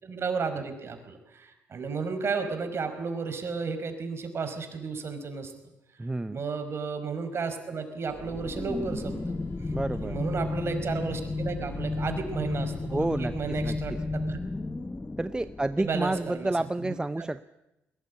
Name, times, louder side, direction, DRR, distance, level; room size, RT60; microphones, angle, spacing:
voice 1, 0.0-5.5 6.3-9.4 9.9-14.4 15.8-16.5 16.8-17.3, right 5 dB, 50° right, 7 dB, 5.1 m, -33 dB
voice 2, 6.0-6.4 9.7-10.2 12.9-14.0 15.2-17.4, right 2 dB, 15° right, 13 dB, 0.7 m, -30 dB
sound 1, 8.1-14.0, left 1 dB, 50° left, 7.8 m, -49 dB
sound 2, 8.1-16.4, left 3 dB, 20° left, 1.3 m, -33 dB
21.0 x 19.0 x 9.6 m, 0.93 s
supercardioid pair, 60°, 6 cm